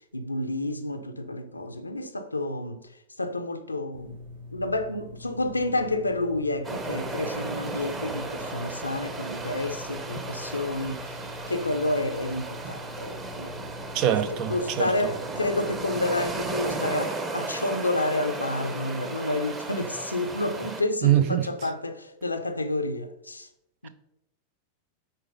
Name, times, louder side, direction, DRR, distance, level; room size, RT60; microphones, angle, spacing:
voice 1, 0.1-2.8 3.2-4.2 4.5-11.1 11.5-13.6 14.1-23.5 23.8-23.9, left 2 dB, 80° left, 0.6 m, -30 dB
sound 1, 3.9-16.9, left 3 dB, 75° right, 1.7 m, -44 dB
sound 2, 6.6-20.8, right 3 dB, 20° right, 1.0 m, -35 dB
voice 2, 13.9-14.9 21.0-21.5, right 11 dB, 40° right, 0.4 m, -23 dB
6.7 x 4.4 x 5.3 m
figure-of-eight pair, 90°, 0 cm